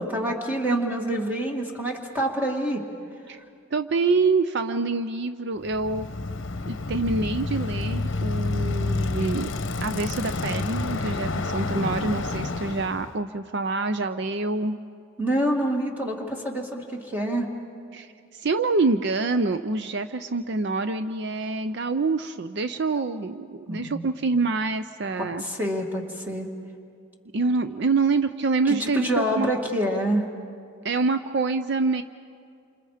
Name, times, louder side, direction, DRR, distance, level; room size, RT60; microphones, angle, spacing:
voice 1, 0.0-2.8 11.8-12.2 15.2-17.5 23.7-24.1 25.4-26.5 28.7-30.3, right 1 dB, 10° right, 0 dB, 2.1 m, -27 dB
voice 2, 3.7-6.1 6.6-9.5 9.8-14.8 17.9-25.4 27.3-29.5 30.8-32.0, right 3 dB, 55° right, 10 dB, 0.5 m, -26 dB
Bicycle, 5.6-13.1, left 3 dB, 60° left, 0.9 m, -29 dB
29.0 x 26.5 x 5.0 m, 2.4 s
head